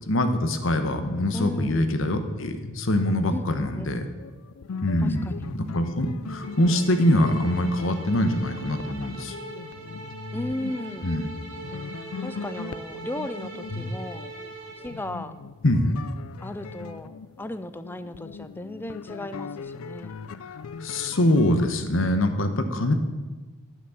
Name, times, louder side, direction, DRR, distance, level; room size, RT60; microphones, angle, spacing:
voice 1, 0.1-4.0 4.8-9.4 11.0-11.3 13.7-13.9 15.6-16.0 20.8-22.9, left 1 dB, 65° left, 8 dB, 1.0 m, -24 dB
voice 2, 1.3-1.9 3.3-3.9 5.0-5.5 10.3-11.2 12.2-14.2 14.8-15.3 16.4-20.2, left 1 dB, 10° left, 12 dB, 0.3 m, -36 dB
sound 1, 4.2-22.0, left 5 dB, 80° left, 0.4 m, -40 dB
sound 2, 6.2-15.1, right 3 dB, 65° right, 2.1 m, -41 dB
10.5 x 6.1 x 7.0 m, 1.2 s
head